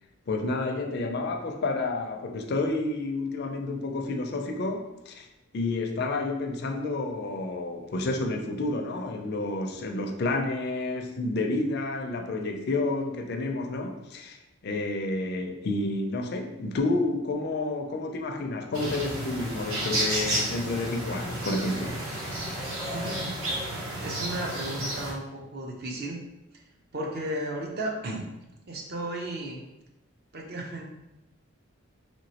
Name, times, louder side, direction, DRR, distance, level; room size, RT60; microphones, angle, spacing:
voice 1, 0.3-5.3 5.5-22.0, left 2 dB, 50° left, 4 dB, 0.4 m, -30 dB
sound 1, 18.7-25.1, right 1 dB, 90° right, 0.9 m, -31 dB
voice 2, 22.9-23.5 24.0-26.2 26.9-28.3 28.7-29.6 30.3-30.8, right 1 dB, 50° right, 1 dB, 0.6 m, -34 dB
3.2 x 3.0 x 2.8 m, 0.90 s
head